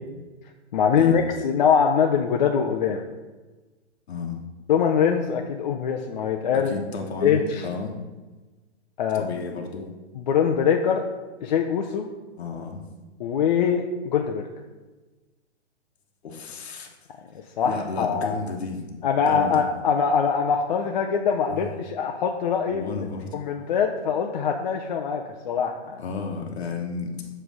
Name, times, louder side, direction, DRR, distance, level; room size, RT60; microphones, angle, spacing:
voice 1, 0.7-3.0 4.7-6.7 7.2-7.6 9.0-9.3 10.2-11.0 11.4-12.1 13.2-14.4 17.3-18.3 19.0-22.8 23.3-26.0, left 7 dB, 40° left, 3 dB, 0.5 m, -23 dB
voice 2, 4.1-4.4 6.5-7.9 9.1-9.9 12.3-12.8 16.2-16.9 17.6-19.6 21.5-21.7 22.7-23.3 26.0-27.3, left 5 dB, 65° left, 2 dB, 1.1 m, -32 dB
7.3 x 3.3 x 6.1 m, 1.2 s
hypercardioid pair, 135°, 35 cm